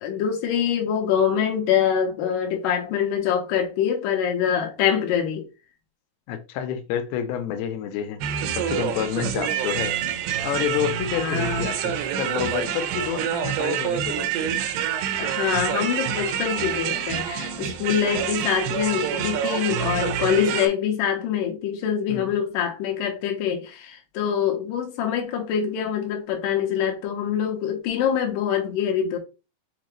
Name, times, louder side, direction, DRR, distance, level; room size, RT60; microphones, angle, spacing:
voice 1, 0.0-5.5 11.2-11.7 15.2-29.2, left 8 dB, 70° left, 2.4 m, -24 dB
voice 2, 6.3-8.2 8.5-10.0 10.4-14.6 22.1-22.3, left 9 dB, 90° left, 2.6 m, -29 dB
sound 1, 8.2-20.7, right 9 dB, 85° right, 2.7 m, -27 dB
6.8 x 2.3 x 3.1 m
omnidirectional pair, 4.6 m